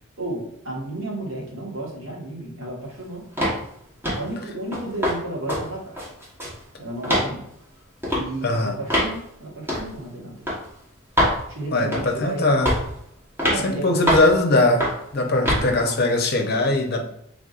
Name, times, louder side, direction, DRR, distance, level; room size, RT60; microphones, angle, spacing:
voice 1, 0.2-3.3 4.1-6.1 6.8-7.5 8.2-10.4 11.5-12.5 13.4-14.2 15.3-16.0, right 1 dB, 75° right, -3 dB, 1.4 m, -32 dB
sound 1, 3.4-3.6 4.0-4.3 4.7-5.2 5.5-5.6 6.0-6.6 7.0-7.3 8.0-8.3 8.9-9.1 9.7-9.9 10.5-10.6 11.2-11.4 11.9-12.2 12.7-12.9 13.4-13.6 14.1-14.3 14.8-15.0 15.5-15.7, equal, 10° right, 1.2 m, -22 dB
voice 2, 8.4-8.8 11.7-12.7 13.6-14.8 15.1-17.0, left 2 dB, 50° left, 2 dB, 0.7 m, -20 dB
5.1 x 3.5 x 2.5 m, 0.76 s
head